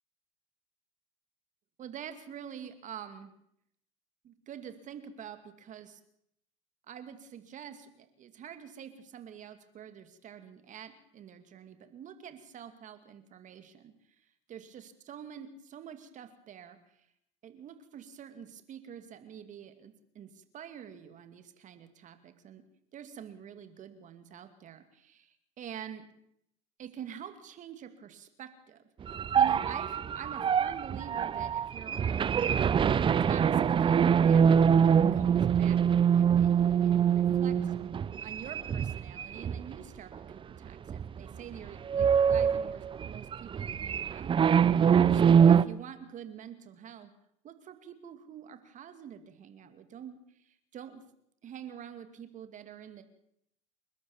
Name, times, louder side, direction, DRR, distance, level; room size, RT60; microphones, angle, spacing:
voice 1, 1.8-3.3 4.2-6.0 6.9-17.1 17.4-22.6 22.9-26.0 26.8-32.4 33.2-34.5 35.1-37.7 38.2-47.1 47.4-51.0 51.4-53.0, right 9 dB, 45° right, 9 dB, 2.3 m, -47 dB
sound 1, 29.0-39.7 40.2-40.3 40.9-41.3 41.5-45.6, right 7 dB, 30° right, 0.7 m, -24 dB
30.0 x 12.0 x 7.1 m, 0.73 s
supercardioid pair, 100°, 18 cm